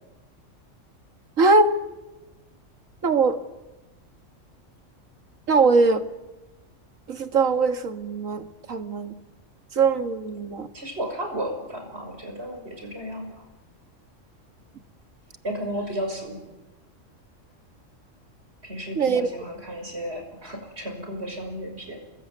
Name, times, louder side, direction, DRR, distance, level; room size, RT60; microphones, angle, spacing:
voice 1, 1.4-1.8 3.0-3.4 5.5-6.1 7.1-9.1 9.7-10.7 19.0-19.3, right 4 dB, 85° right, 2.1 m, -21 dB
voice 2, 10.7-13.4 15.4-16.4 18.6-22.0, equal, 55° right, 6.3 m, -33 dB
30.0 x 20.5 x 9.6 m
omnidirectional pair, 1.3 m